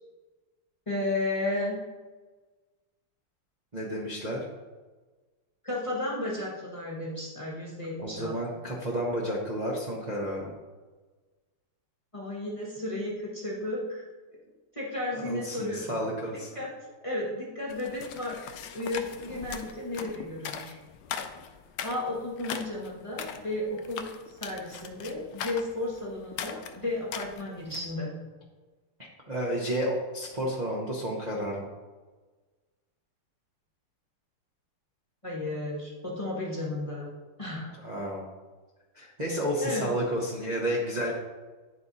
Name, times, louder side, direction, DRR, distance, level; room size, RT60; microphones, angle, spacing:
voice 1, 0.9-1.8 5.6-8.3 12.1-14.1 14.7-15.9 16.3-16.7 17.0-18.3 18.7-20.8 21.8-28.2 35.2-37.1 37.4-37.7 39.6-39.9, left 2 dB, 20° left, -5 dB, 0.9 m, -33 dB
voice 2, 3.7-4.4 8.0-10.5 15.1-16.5 29.3-31.7 37.8-38.2 38.9-41.1, equal, 40° right, -4 dB, 0.5 m, -31 dB
sound 1, 17.7-27.9, left 8 dB, 85° left, 0.9 m, -40 dB
9.7 x 3.7 x 4.1 m, 1.3 s
omnidirectional pair, 2.4 m